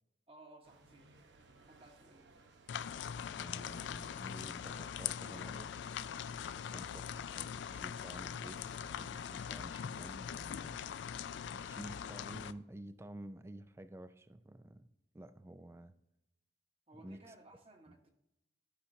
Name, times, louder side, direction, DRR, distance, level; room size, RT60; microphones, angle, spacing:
voice 1, 0.3-1.1 1.6-2.3 3.6-3.8 6.5-6.8 16.9-18.1, right 2 dB, 30° right, 4 dB, 1.1 m, -59 dB
sound 1, 0.6-9.8, right 3 dB, 80° right, 0.9 m, -63 dB
sound 2, 2.7-12.5, left 8 dB, 80° left, 0.3 m, -42 dB
voice 2, 3.4-5.7 6.4-8.6 8.9-10.8 11.5-14.9 15.1-15.9 17.0-17.3 17.9-18.0, right 1 dB, 15° right, 11 dB, 0.3 m, -51 dB
11.5 x 5.7 x 2.7 m, 0.89 s
head